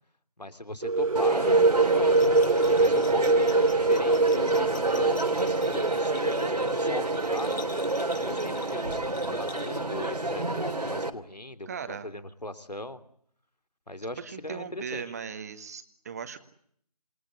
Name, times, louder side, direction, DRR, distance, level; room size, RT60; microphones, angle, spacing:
voice 1, 0.4-2.3 2.6-7.5 8.2-13.0 13.9-15.0, left 1 dB, 90° left, 10 dB, 3.2 m, -39 dB
sound 1, 0.8-8.4, right 3 dB, 60° right, 2.3 m, -24 dB
Crowd, 1.2-11.1, right 2 dB, 80° right, 3.1 m, -30 dB
Bell, 2.1-10.0, left 6 dB, 30° left, 5.4 m, -48 dB
voice 2, 11.7-12.1 14.2-16.4, right 6 dB, 25° right, 10 dB, 1.8 m, -38 dB
28.0 x 21.0 x 9.7 m, 0.67 s
figure-of-eight pair, 160°, 20 cm